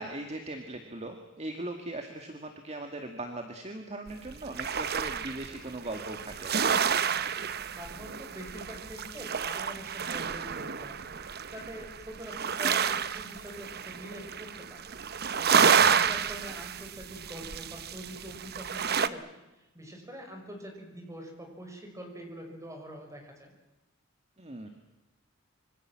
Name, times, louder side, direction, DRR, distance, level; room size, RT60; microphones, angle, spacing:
voice 1, 0.0-6.8 15.5-16.1 24.4-24.7, right 2 dB, 30° right, 5 dB, 2.0 m, -39 dB
sound 1, 4.1-19.1, right 7 dB, 50° right, 0.9 m, -30 dB
voice 2, 7.7-11.2 11.5-15.6 15.9-23.5, equal, 15° right, 3 dB, 5.7 m, -45 dB
26.0 x 24.5 x 7.6 m, 1.0 s
head